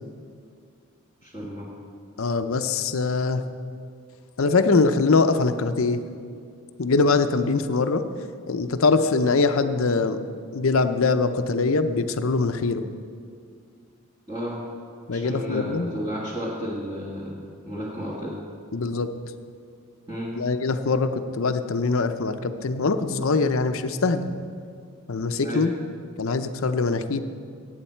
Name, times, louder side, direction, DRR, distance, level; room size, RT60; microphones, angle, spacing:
voice 1, 1.2-1.7 14.3-14.6 15.1-18.3 20.1-20.3 25.4-25.7, equal, 20° right, -7 dB, 1.5 m, -32 dB
voice 2, 2.2-3.4 4.4-6.0 6.8-8.0 8.5-10.2 10.5-12.8 15.1-15.9 18.7-19.1 20.4-24.3 25.1-25.7 26.2-27.2, left 3 dB, 70° left, 9 dB, 0.6 m, -23 dB
17.0 x 8.9 x 4.4 m, 2.3 s
head